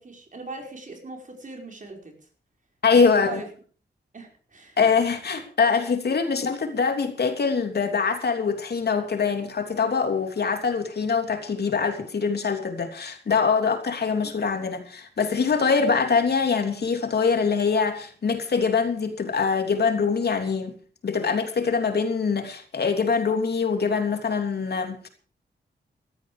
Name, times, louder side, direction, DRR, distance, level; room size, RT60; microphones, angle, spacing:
voice 1, 0.0-2.2 2.9-3.5 4.1-4.8 14.2-14.3, right 3 dB, 45° right, 5.1 m, -40 dB
voice 2, 2.8-3.4 4.8-20.7 21.0-25.1, left 5 dB, 65° left, 3.1 m, -23 dB
16.0 x 13.5 x 5.0 m
wide cardioid pair, 90°, 18 cm